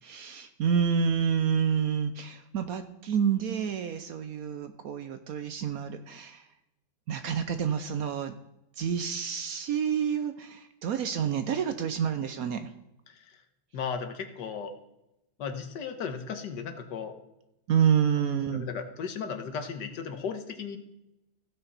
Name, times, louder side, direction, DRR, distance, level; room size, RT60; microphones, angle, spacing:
voice 1, 0.0-6.4 7.1-8.3 8.8-12.7 17.7-18.7, right 7 dB, 70° right, 9 dB, 0.9 m, -28 dB
voice 2, 13.7-14.7 15.4-17.1 18.2-20.8, left 6 dB, 75° left, 7 dB, 1.6 m, -36 dB
15.5 x 5.9 x 4.1 m, 0.89 s
omnidirectional pair, 1.9 m